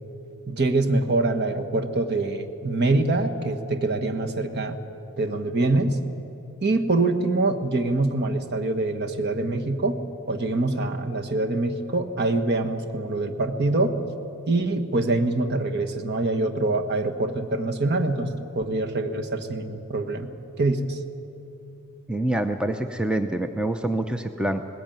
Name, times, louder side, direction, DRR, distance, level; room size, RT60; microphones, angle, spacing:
voice 1, 0.5-4.8 5.2-6.0 6.6-10.0 10.3-13.9 14.5-18.3 18.5-20.3 20.6-21.0, right 2 dB, 50° right, 5 dB, 1.3 m, -24 dB
voice 2, 22.1-24.7, right 1 dB, 5° right, 7 dB, 0.6 m, -26 dB
19.0 x 15.5 x 9.2 m, 2.8 s
head